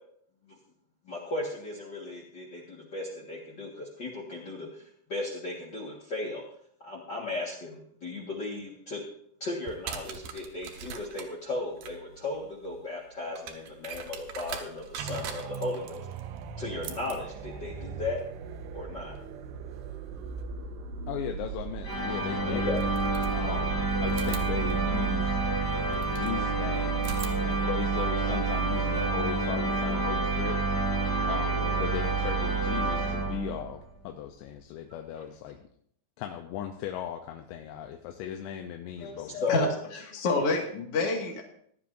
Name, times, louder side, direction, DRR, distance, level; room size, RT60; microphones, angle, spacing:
voice 1, 1.1-4.8 5.1-6.4 6.8-9.0 9.4-16.1 16.6-18.2 18.7-19.1 22.5-22.8 39.4-39.7, left 3 dB, 70° left, -3 dB, 1.0 m, -35 dB
sound 1, 9.6-20.4 21.9-22.0 22.7-23.7 24.1-26.4 27.0-29.0, right 7 dB, 70° right, 2.6 m, -44 dB
sound 2, 15.0-28.6 29.1-29.2, right 6 dB, 90° right, 2.9 m, -41 dB
voice 2, 21.1-22.8 23.3-25.4 26.1-27.0 27.4-30.9 31.2-35.6 36.2-39.4, left 10 dB, 85° left, 4 dB, 3.0 m, -37 dB
sound 3, 21.8-33.8, right 3 dB, 10° left, 1.3 m, -28 dB
voice 3, 39.0-41.4, left 3 dB, 45° left, 1 dB, 2.2 m, -29 dB
17.5 x 11.5 x 2.6 m, 0.66 s
omnidirectional pair, 5.0 m